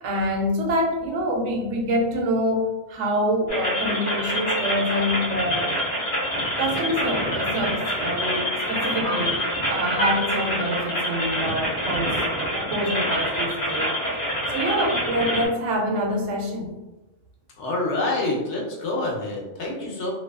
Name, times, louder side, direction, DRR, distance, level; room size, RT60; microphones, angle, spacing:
voice 1, 0.0-5.7 6.6-9.4 9.7-12.2 12.5-14.0 14.5-16.7, equal, 90° right, 1 dB, 0.9 m, -26 dB
sound 1, 3.5-15.5, equal, 35° left, 0.9 m, -26 dB
voice 2, 17.6-20.1, left 2 dB, 80° left, -2 dB, 1.0 m, -27 dB
2.6 x 2.3 x 2.2 m, 1.1 s
omnidirectional pair, 1.2 m